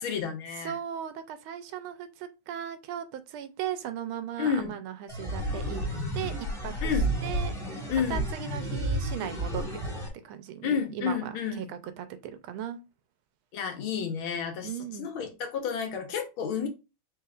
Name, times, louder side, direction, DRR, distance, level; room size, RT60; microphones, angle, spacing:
voice 1, 0.0-0.7 4.4-4.7 6.8-7.1 7.9-8.2 10.6-11.7 13.5-14.7 15.0-16.7, left 7 dB, 80° left, 1.8 m, -30 dB
voice 2, 0.6-5.8 6.1-6.9 7.2-7.5 8.1-12.8 14.6-15.1, right 9 dB, 85° right, 1.5 m, -37 dB
sound 1, 5.1-10.1, right 1 dB, ahead, 1.3 m, -31 dB
5.7 x 3.5 x 2.4 m
omnidirectional pair, 2.3 m